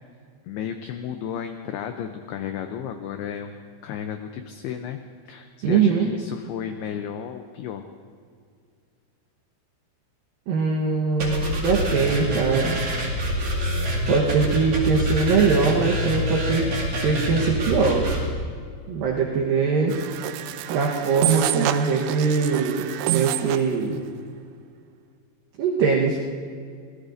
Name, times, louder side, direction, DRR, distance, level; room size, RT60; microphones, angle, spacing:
voice 1, 0.4-3.6 3.8-5.0 5.3-7.8, left 8 dB, 90° left, 6 dB, 2.2 m, -33 dB
voice 2, 5.6-6.1 10.5-12.8 14.1-16.6 17.0-18.0 18.9-19.9 20.7-22.9 23.1-24.0 25.6-26.2, right 5 dB, 70° right, -2 dB, 2.3 m, -22 dB
sound 1, 11.2-18.2, equal, 40° right, 2.7 m, -26 dB
sound 2, 19.9-23.7, right 12 dB, 90° right, 3.1 m, -27 dB
24.5 x 19.0 x 2.6 m, 2.2 s
omnidirectional pair, 5.4 m